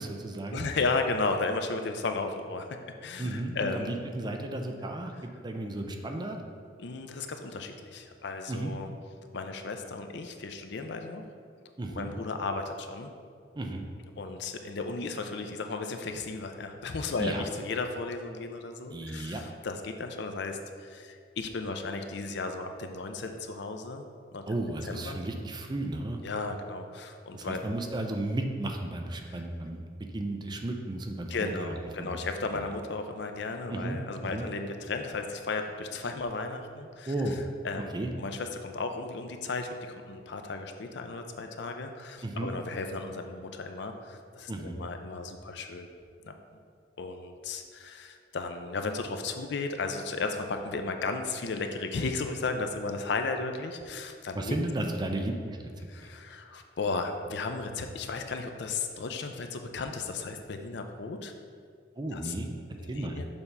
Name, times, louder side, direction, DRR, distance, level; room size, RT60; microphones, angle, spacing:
voice 1, 0.0-0.7 3.2-6.4 8.5-8.7 11.8-12.1 13.5-13.9 17.2-17.4 18.9-19.4 24.5-26.2 27.3-32.2 32.5-32.6 33.7-34.5 37.1-37.4 37.9-38.1 42.2-42.5 44.5-44.8 54.3-55.7 62.0-63.2, right 1 dB, 25° right, 3 dB, 0.5 m, -34 dB
voice 2, 0.5-4.0 6.8-8.9 9.3-11.2 11.9-13.1 14.2-24.0 24.3-24.4 24.9-25.2 26.2-27.6 29.2-29.4 31.3-37.1 37.6-45.9 46.2-46.3 47.0-54.6 55.9-61.3 62.1-62.3 62.8-63.3, left 3 dB, 65° left, 6 dB, 0.5 m, -34 dB
7.0 x 3.4 x 5.4 m, 2.2 s
head